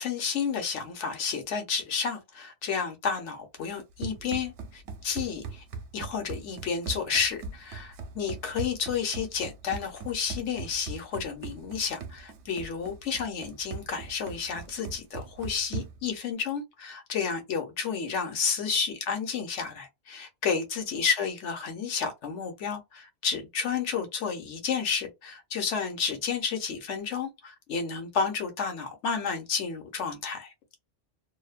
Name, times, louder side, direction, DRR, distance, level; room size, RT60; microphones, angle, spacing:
voice 1, 0.0-5.6 5.9-30.5, left 6 dB, 75° left, 1.1 m, -31 dB
Run, 3.7-16.1, right 5 dB, 70° right, 0.9 m, -40 dB
2.6 x 2.1 x 2.4 m
omnidirectional pair, 1.2 m